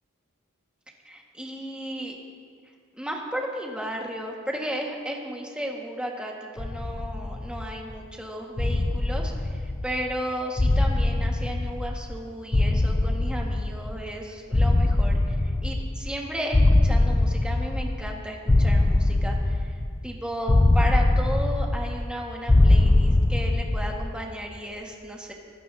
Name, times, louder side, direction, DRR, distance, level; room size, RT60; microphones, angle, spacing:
voice 1, 1.0-2.1 2.9-25.3, equal, 5° right, 0 dB, 1.5 m, -34 dB
sound 1, 6.6-7.9 8.6-10.1 10.6-12.2 12.5-14.1 14.5-16.2 16.5-18.1 18.5-20.1 20.5-22.1 22.5-24.1, left 2 dB, 15° left, 0.4 m, -22 dB
24.5 x 13.5 x 2.7 m, 2.2 s
head